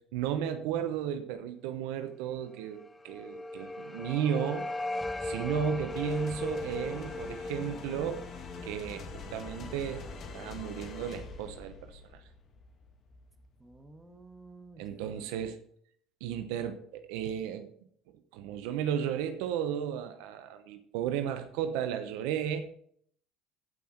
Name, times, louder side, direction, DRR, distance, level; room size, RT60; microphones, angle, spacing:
voice 1, 0.1-4.7 5.2-8.2 8.6-10.1 10.3-12.2 14.8-15.6 16.2-17.7 18.1-22.6, right 9 dB, 75° right, 8 dB, 0.9 m, -34 dB
sound 1, 2.8-9.8, left 1 dB, 15° left, 0.7 m, -38 dB
sound 2, 5.9-14.4, left 4 dB, 45° left, 1.7 m, -45 dB
voice 2, 13.6-15.3, right 3 dB, 15° right, 5 dB, 1.9 m, -53 dB
14.5 x 5.6 x 4.4 m, 0.63 s
hypercardioid pair, 75°, 0 cm